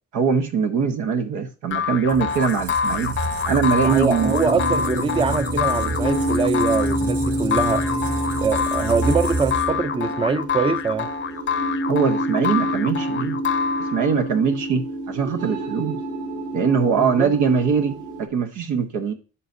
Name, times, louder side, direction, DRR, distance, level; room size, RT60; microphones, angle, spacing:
voice 1, 0.1-3.1 3.4-4.3 11.9-13.4 13.9-16.0 16.5-19.1, right 6 dB, 85° right, 1.2 m, -22 dB
sound 1, 1.7-14.2, left 7 dB, 40° left, 0.7 m, -26 dB
Squeak, 2.1-9.9, right 2 dB, 50° right, 2.9 m, -29 dB
voice 2, 3.8-7.8 8.4-11.1 17.0-17.3, right 4 dB, 20° right, 0.5 m, -23 dB
sound 2, 4.2-18.3, right 1 dB, 70° right, 2.5 m, -28 dB
9.9 x 5.4 x 2.7 m
cardioid pair, 90°, 30 cm